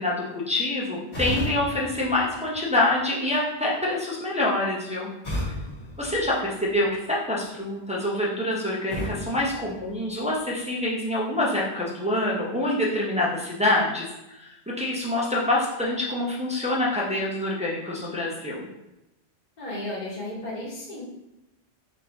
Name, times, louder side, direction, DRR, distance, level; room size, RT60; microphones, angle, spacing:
voice 1, 0.0-5.1 6.0-18.7, left 1 dB, 10° right, -5 dB, 0.3 m, -26 dB
sound 1, 1.1-3.1 5.2-7.0 8.9-10.5, left 1 dB, 75° left, 1.7 m, -35 dB
voice 2, 19.6-21.0, left 1 dB, 40° left, -6 dB, 1.1 m, -34 dB
4.1 x 2.6 x 3.3 m, 0.94 s
omnidirectional pair, 1.1 m